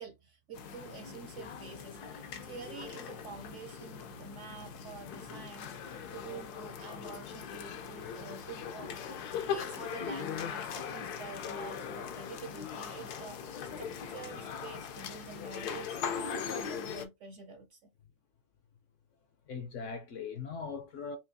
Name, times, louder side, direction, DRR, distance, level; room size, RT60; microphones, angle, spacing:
voice 1, 0.0-17.8, right 4 dB, 65° right, 0.8 m, -48 dB
sound 1, 0.5-17.1, left 7 dB, 80° left, 1.2 m, -40 dB
voice 2, 2.2-2.8 6.0-6.3 9.2-9.6 13.7-13.9 19.5-21.2, left 5 dB, 65° left, 0.8 m, -43 dB
5.7 x 2.3 x 2.7 m
omnidirectional pair, 1.7 m